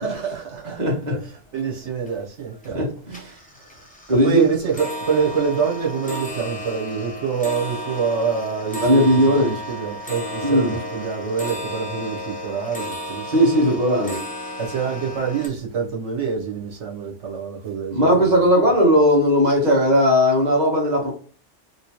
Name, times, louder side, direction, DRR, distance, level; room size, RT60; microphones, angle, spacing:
voice 1, 0.0-0.8 1.1-2.9 3.7-3.9 4.2-13.2 14.6-18.5, right 6 dB, 75° right, 1.3 m, -26 dB
voice 2, 0.8-1.2 2.7-3.4 4.1-4.4 8.8-9.5 10.4-10.7 13.3-14.2 17.9-21.1, equal, 40° right, 1.4 m, -17 dB
sound 1, 1.1-1.2 1.5-2.1 2.5-2.8 3.1-15.5, equal, 10° left, 0.6 m, -33 dB
3.2 x 3.0 x 2.9 m
omnidirectional pair, 1.2 m